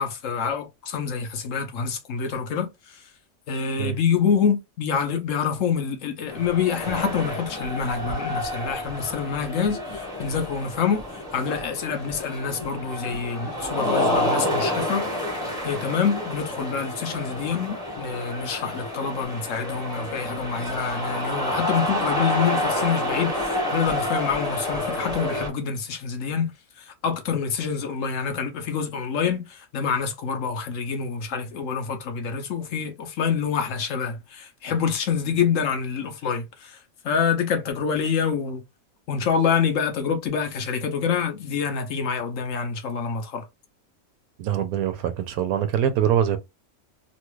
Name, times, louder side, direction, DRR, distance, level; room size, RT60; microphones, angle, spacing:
voice 1, 0.0-3.0 3.5-15.0 15.6-26.5 26.8-36.8 37.0-38.6 39.1-43.4, left 6 dB, 65° left, 1.1 m, -26 dB
sound 1, 6.3-25.5, left 1 dB, 5° right, 0.8 m, -29 dB
sound 2, 11.2-12.0 13.2-14.2 15.3-15.9 17.0-18.2 19.2-19.3, left 3 dB, 45° left, 1.1 m, -46 dB
voice 2, 44.4-46.4, right 10 dB, 85° right, 1.1 m, -23 dB
3.1 x 2.3 x 3.1 m
omnidirectional pair, 1.5 m